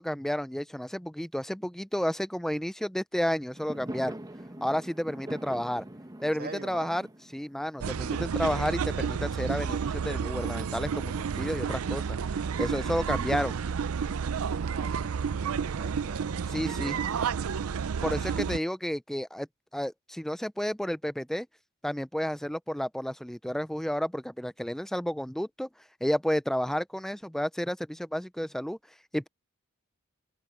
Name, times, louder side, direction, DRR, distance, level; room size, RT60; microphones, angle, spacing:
voice 1, 0.0-4.2 4.6-5.8 6.2-7.1 7.3-12.2 12.6-13.6 16.5-17.0 18.0-19.5 19.7-21.5 21.8-25.7 26.0-28.8 29.1-29.3, equal, ahead, 0.5 m, -31 dB
Fireworks, 3.5-8.8, right 1 dB, 20° right, 1.1 m, -43 dB
voice 2, 6.4-7.1 14.5-17.1, right 3 dB, 45° right, 2.3 m, -44 dB
sound 1, 7.8-18.6, right 6 dB, 80° right, 0.5 m, -31 dB
head